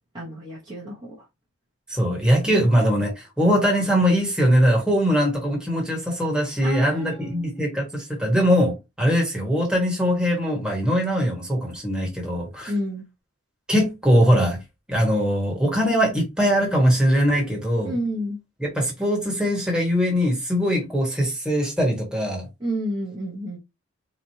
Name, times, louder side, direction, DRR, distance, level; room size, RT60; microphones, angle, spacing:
voice 1, 0.1-1.3 2.4-2.7 6.6-7.8 12.7-13.0 17.8-18.4 22.6-23.6, equal, 20° right, 1.0 m, -30 dB
voice 2, 1.9-12.7 13.7-14.6 14.9-17.9 18.6-22.5, equal, 5° right, 1.3 m, -21 dB
4.1 x 3.0 x 2.8 m
head